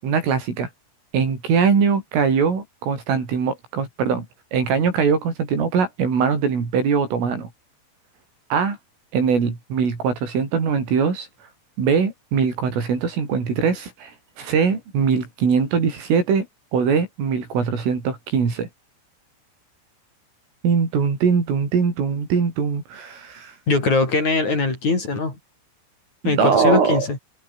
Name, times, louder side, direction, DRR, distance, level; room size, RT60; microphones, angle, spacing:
voice 1, 0.0-0.7 1.1-4.3 4.5-7.5 8.5-8.8 9.1-11.3 11.8-14.1 14.4-16.5 16.7-18.7 20.6-23.6 26.2-27.1, right 6 dB, 85° right, 8.8 m, -21 dB
voice 2, 23.7-25.4 26.2-27.2, left 3 dB, 35° left, 7.3 m, -21 dB
omnidirectional pair, 5.6 m